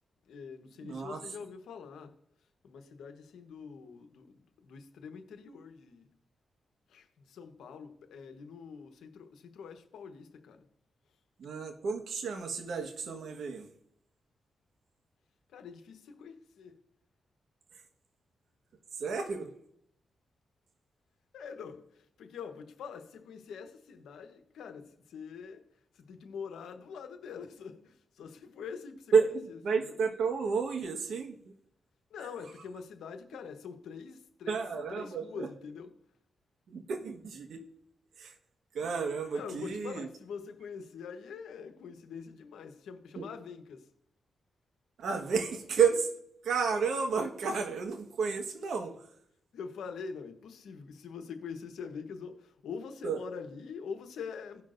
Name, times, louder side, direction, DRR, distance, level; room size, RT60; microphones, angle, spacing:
voice 1, 0.3-2.2 2.6-6.1 6.9-10.7 15.5-16.8 21.3-29.1 29.5-29.6 29.9-30.0 32.1-34.6 34.9-35.9 39.3-43.9 49.5-54.6, left 6 dB, 90° left, 1.0 m, -44 dB
voice 2, 0.8-1.2 11.4-13.7 19.0-19.5 29.1-29.3 29.6-31.3 34.5-35.5 36.7-37.6 38.2-38.3 38.7-40.1 43.2-43.3 45.0-46.1 46.4-49.0 53.0-53.2, right 5 dB, 75° right, 1.3 m, -31 dB
17.0 x 5.9 x 2.6 m
cardioid pair, 65°, 0 cm